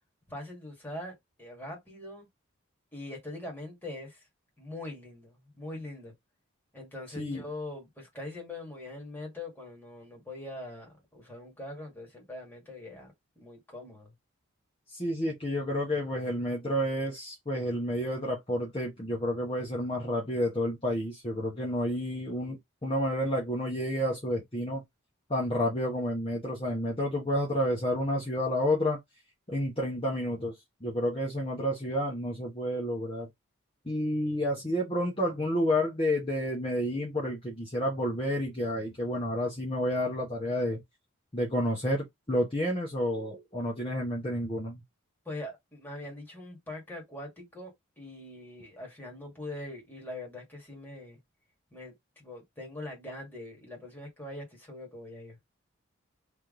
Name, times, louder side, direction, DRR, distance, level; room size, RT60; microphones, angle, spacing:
voice 1, 0.3-2.3 2.9-4.3 4.6-6.1 6.7-14.1 45.3-51.2 51.7-55.4, left 1 dB, 10° left, 1.9 m, -42 dB
voice 2, 14.9-24.8 25.3-29.0 29.5-30.6 30.8-33.3 33.8-40.8 41.3-44.8, equal, 25° left, 1.1 m, -30 dB
3.5 x 3.1 x 3.8 m
head